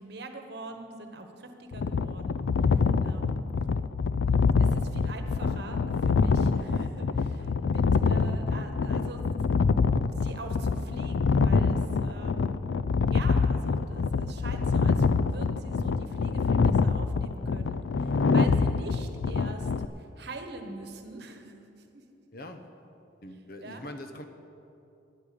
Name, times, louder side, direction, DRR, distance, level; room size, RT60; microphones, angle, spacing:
voice 1, 0.0-3.4 4.6-9.5 10.0-12.6 13.0-19.7 20.0-21.6 21.9-22.0 23.6-23.8, right 2 dB, 60° right, 5 dB, 1.1 m, -44 dB
sound 1, 1.7-19.9, left 4 dB, 75° left, 0.4 m, -25 dB
voice 2, 22.3-22.7 23.2-24.3, left 1 dB, 50° left, 7 dB, 0.9 m, -43 dB
10.5 x 8.7 x 8.6 m, 2.7 s
head